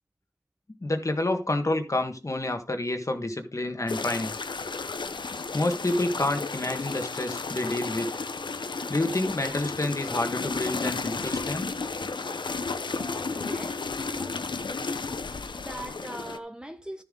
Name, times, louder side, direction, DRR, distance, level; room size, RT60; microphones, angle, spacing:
voice 1, 0.8-4.4 5.5-8.1 8.9-11.7, left 2 dB, 40° left, 1.6 m, -28 dB
sound 1, 3.9-16.4, left 4 dB, 85° left, 0.7 m, -33 dB
voice 2, 12.9-14.5 15.5-17.0, right 1 dB, 10° right, 1.1 m, -41 dB
12.5 x 7.3 x 3.8 m
wide cardioid pair, 75°, 8 cm